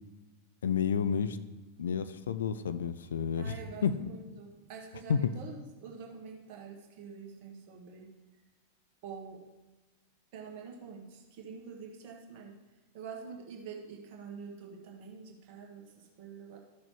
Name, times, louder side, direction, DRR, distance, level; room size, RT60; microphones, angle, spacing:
voice 1, 0.6-1.4 1.8-3.6 3.8-3.9 5.1-5.3, left 7 dB, 65° left, 12 dB, 0.4 m, -30 dB
voice 2, 3.4-8.1 9.0-9.5 10.3-12.6 12.9-16.6, right 5 dB, 45° right, 0 dB, 1.8 m, -46 dB
13.5 x 6.3 x 3.1 m, 1.2 s
figure-of-eight pair, 90°, 0 cm